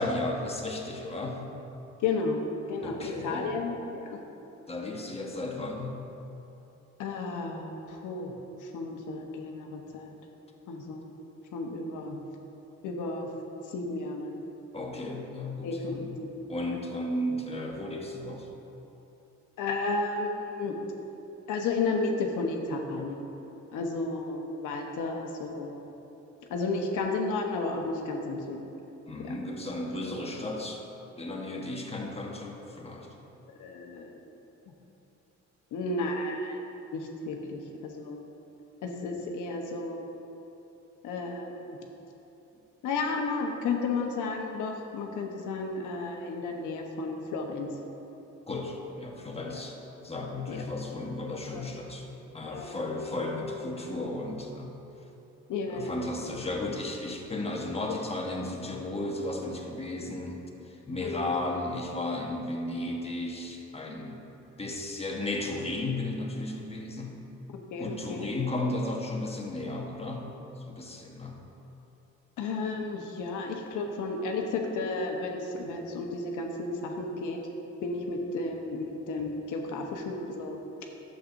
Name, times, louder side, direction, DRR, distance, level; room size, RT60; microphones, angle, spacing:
voice 1, 0.0-1.5 2.8-3.5 4.7-6.0 14.7-16.2 16.5-18.5 29.1-30.8 31.2-33.1 48.5-52.1 52.3-54.7 55.7-64.2 64.6-67.2 67.8-70.3 70.6-71.4, left 2 dB, 20° left, -1 dB, 1.3 m, -34 dB
voice 2, 2.0-4.2 7.0-8.3 8.6-10.1 10.7-11.2 11.5-12.2 12.8-13.3 13.6-14.3 15.6-16.3 19.6-20.8 21.5-23.3 23.7-25.8 26.5-28.7 29.2-29.3 33.6-34.2 35.7-36.6 36.9-38.2 38.8-40.0 41.0-41.7 42.8-47.7 49.5-49.6 50.5-50.6 51.5-51.7 52.4-52.8 55.5-55.9 56.2-56.3 61.0-61.5 67.7-68.3 72.4-77.4 77.8-80.6, left 3 dB, 80° left, 1 dB, 1.1 m, -33 dB
12.0 x 7.9 x 2.6 m, 3.0 s
cardioid pair, 90°, 30 cm